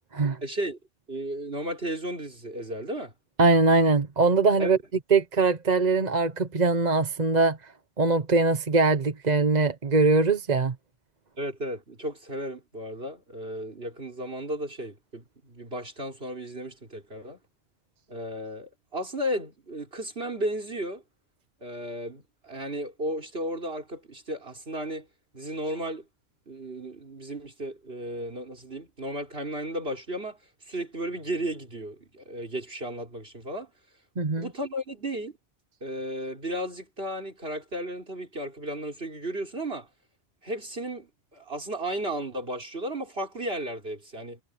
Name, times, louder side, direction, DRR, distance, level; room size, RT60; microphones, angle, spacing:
voice 1, 0.4-0.8 1.1-3.1 4.6-4.7 11.4-17.4 18.1-21.0 21.6-25.1 25.3-26.1 26.5-30.4 30.7-33.7 34.4-35.3 35.8-39.9 40.4-44.4, right 1 dB, 65° right, 5.0 m, -34 dB
voice 2, 3.4-4.8 5.1-7.6 8.0-10.7 34.2-34.5, right 3 dB, 40° right, 1.1 m, -22 dB
omnidirectional pair, 1.1 m